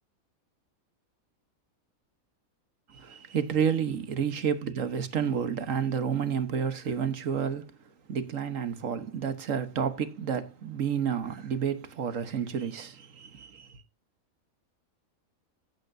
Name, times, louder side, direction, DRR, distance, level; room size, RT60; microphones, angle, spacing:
voice 1, 2.9-7.8 8.1-13.8, right 7 dB, 65° right, 1.4 m, -30 dB
15.5 x 8.1 x 2.6 m
omnidirectional pair, 1.5 m